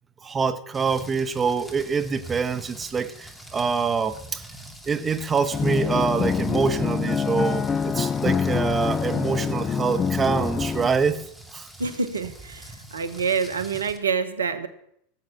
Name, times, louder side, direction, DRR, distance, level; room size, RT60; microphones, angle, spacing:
voice 1, 0.2-4.4 4.9-11.2 11.5-11.7, right 5 dB, 20° right, 1.1 m, -25 dB
Rain, 0.7-14.0, right 1 dB, 5° left, 2.5 m, -44 dB
sound 1, 5.5-10.9, left 6 dB, 25° left, 0.4 m, -25 dB
voice 2, 11.8-14.7, right 5 dB, 80° right, 1.1 m, -27 dB
18.0 x 7.9 x 5.9 m
figure-of-eight pair, 85°, 0 cm